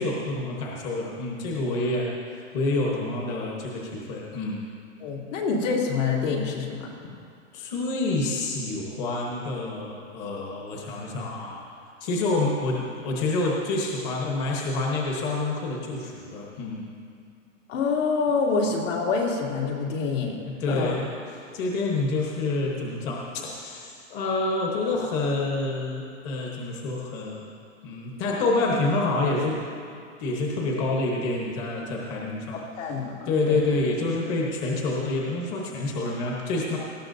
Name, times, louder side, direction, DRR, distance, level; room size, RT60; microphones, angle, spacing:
voice 1, 0.0-4.6 7.5-11.6 12.0-16.9 20.6-27.5 27.8-29.6 30.2-32.6 33.3-36.8, left 2 dB, 25° left, -2 dB, 1.1 m, -28 dB
voice 2, 5.0-6.9 17.7-20.4 20.7-21.0 32.8-33.6, left 4 dB, 75° left, -2 dB, 2.9 m, -26 dB
18.5 x 13.5 x 2.7 m, 2.3 s
supercardioid pair, 170°, 37 cm